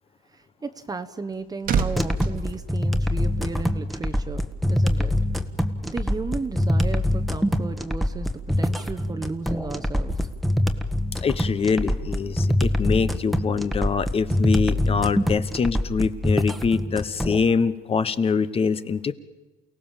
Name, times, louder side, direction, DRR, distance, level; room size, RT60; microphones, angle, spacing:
voice 1, 0.3-4.4 4.7-5.1 5.8-8.3 8.6-10.3, right 4 dB, 20° right, 7 dB, 1.1 m, -34 dB
sound 1, 1.1-3.6 3.9-4.1, right 5 dB, 55° right, 1.7 m, -30 dB
sound 2, 2.0-17.4, left 1 dB, ahead, 1.4 m, -24 dB
voice 2, 11.2-19.1, left 5 dB, 35° left, 14 dB, 1.1 m, -24 dB
28.5 x 17.5 x 7.4 m, 1.1 s
cardioid pair, 110°, 17 cm